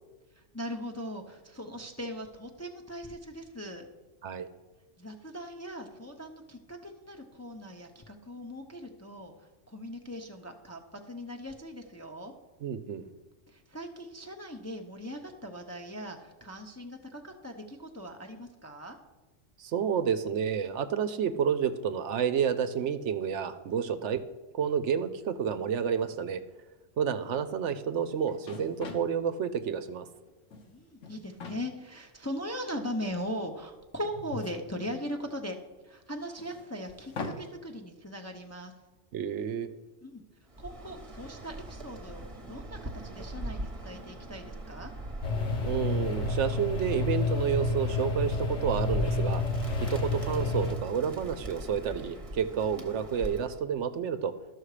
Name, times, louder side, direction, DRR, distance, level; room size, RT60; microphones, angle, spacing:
voice 1, 0.5-3.9 5.0-9.3 9.7-12.3 13.5-19.0 30.7-35.6 35.8-38.7 40.0-40.2 40.6-44.9, equal, 15° left, 3 dB, 0.6 m, -39 dB
voice 2, 12.6-13.1 19.6-24.2 24.5-26.4 27.0-30.1 39.1-39.7 45.6-49.4 49.8-54.3, right 7 dB, 70° right, 11 dB, 0.9 m, -30 dB
sound 1, 27.9-28.0 28.3-29.1 30.3-30.7 31.0-31.6 32.5-32.6 34.0-35.3 36.3-37.4, left 3 dB, 75° left, 1.4 m, -41 dB
Bird, 40.5-53.6, right 1 dB, 30° right, 1.1 m, -41 dB
sound 2, 45.2-50.7, left 3 dB, 60° left, 1.2 m, -30 dB
12.5 x 6.3 x 4.9 m, 1.2 s
omnidirectional pair, 1.3 m